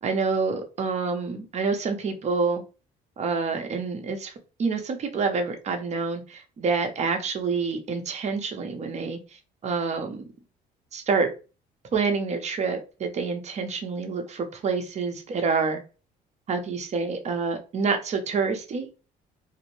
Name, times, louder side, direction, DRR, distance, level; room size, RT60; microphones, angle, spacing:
voice 1, 0.0-2.6 3.2-4.3 4.6-10.3 10.9-11.3 11.9-15.8 16.5-18.9, right 4 dB, 40° right, 5 dB, 0.6 m, -27 dB
2.6 x 2.0 x 3.1 m, 0.33 s
cardioid pair, 110°, 17 cm